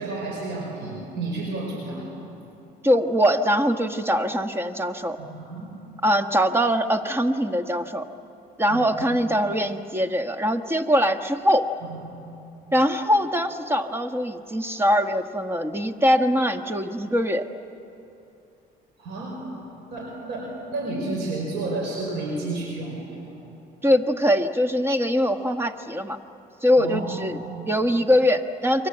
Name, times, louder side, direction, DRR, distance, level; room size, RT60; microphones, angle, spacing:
voice 1, 0.0-2.1 5.2-5.7 8.7-9.1 11.8-12.2 19.0-19.4 19.9-23.2 26.7-27.6, right 2 dB, 85° right, -1 dB, 5.4 m, -31 dB
voice 2, 2.8-5.2 6.0-8.0 8.6-11.7 12.7-17.5 23.8-26.2 26.6-28.9, equal, 15° right, 7 dB, 1.4 m, -22 dB
28.5 x 23.0 x 8.1 m, 2.8 s
cardioid pair, 110°, 17 cm